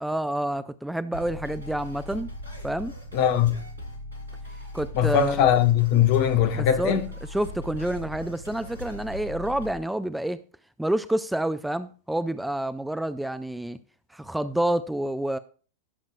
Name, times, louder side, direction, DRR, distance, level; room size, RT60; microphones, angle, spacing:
voice 1, 0.0-2.3 2.6-2.9 4.7-5.5 6.5-7.0 7.3-10.4 10.8-13.8 14.1-15.4, right 1 dB, 5° right, 0.4 m, -28 dB
sound 1, 1.1-9.7, left 1 dB, 75° right, 2.8 m, -39 dB
voice 2, 3.1-3.5 4.9-7.1, left 10 dB, 45° left, 1.1 m, -21 dB
16.0 x 7.2 x 2.3 m
figure-of-eight pair, 90°, 0 cm